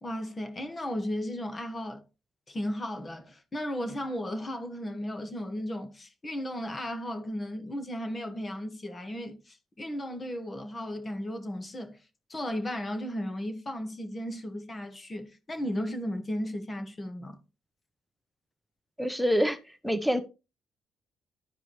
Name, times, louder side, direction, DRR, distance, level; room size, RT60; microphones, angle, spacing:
voice 1, 0.0-2.0 2.5-12.0 12.3-17.4, equal, 30° left, 1.7 m, -35 dB
voice 2, 19.0-19.6 19.8-20.2, equal, ahead, 1.0 m, -25 dB
12.5 x 4.8 x 3.2 m
cardioid pair, 90°, 0 cm